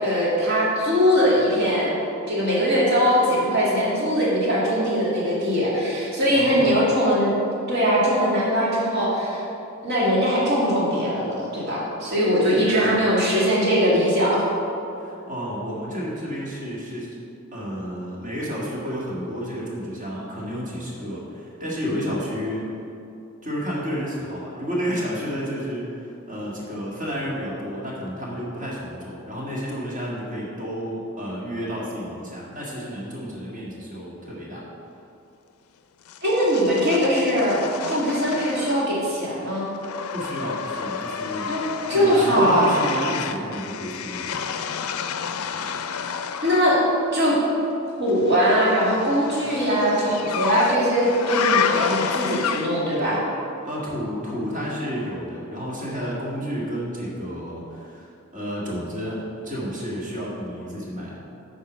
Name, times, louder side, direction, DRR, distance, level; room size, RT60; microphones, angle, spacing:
voice 1, 0.0-1.9 2.3-7.3 7.7-9.4 9.8-14.4 36.2-37.6 37.9-39.7 41.5-42.8 46.4-46.8 47.1-47.3 48.0-53.2, equal, 50° right, -6 dB, 2.1 m, -21 dB
voice 2, 6.3-6.8 12.8-13.0 15.0-17.2 17.5-22.6 23.4-34.7 40.1-41.5 41.9-44.4 53.6-61.2, equal, 35° right, -5 dB, 1.9 m, -31 dB
sound 1, 36.1-39.1 39.4-46.7 48.3-53.0, left 7 dB, 85° left, 0.4 m, -30 dB
8.2 x 4.8 x 6.2 m, 2.8 s
head